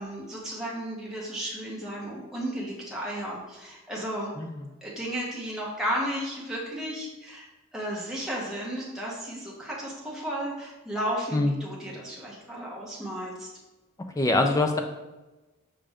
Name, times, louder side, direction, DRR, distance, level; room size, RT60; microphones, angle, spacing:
voice 1, 0.0-4.3 4.8-7.5 7.7-13.5, equal, ahead, -5 dB, 0.9 m, -34 dB
voice 2, 14.2-14.8, left 2 dB, 15° left, 4 dB, 0.3 m, -23 dB
6.2 x 2.5 x 3.3 m, 1.1 s
head